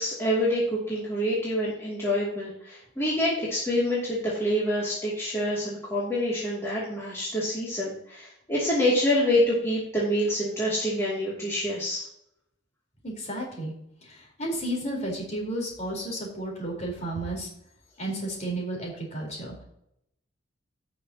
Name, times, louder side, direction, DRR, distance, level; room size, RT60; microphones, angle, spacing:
voice 1, 0.0-12.1, equal, 15° left, -8 dB, 2.6 m, -26 dB
voice 2, 13.0-13.7 14.0-17.5 18.0-19.6, right 1 dB, 35° left, -2 dB, 4.2 m, -32 dB
16.5 x 6.4 x 2.9 m, 0.75 s
head